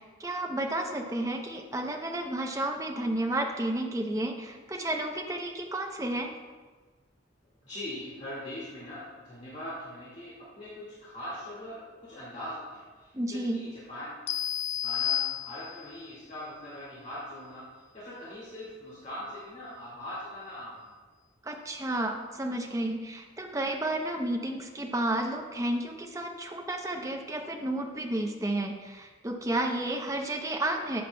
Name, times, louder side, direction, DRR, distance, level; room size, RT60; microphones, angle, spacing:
voice 1, 0.0-6.3 13.1-13.6 21.4-31.0, right 1 dB, 15° right, 2 dB, 0.7 m, -32 dB
voice 2, 7.6-14.1 14.8-17.6 17.9-20.9, left 1 dB, 35° left, -9 dB, 2.0 m, -41 dB
sound 1, 14.3-16.0, left 11 dB, 70° left, 0.3 m, -31 dB
13.0 x 7.2 x 2.3 m, 1.4 s
head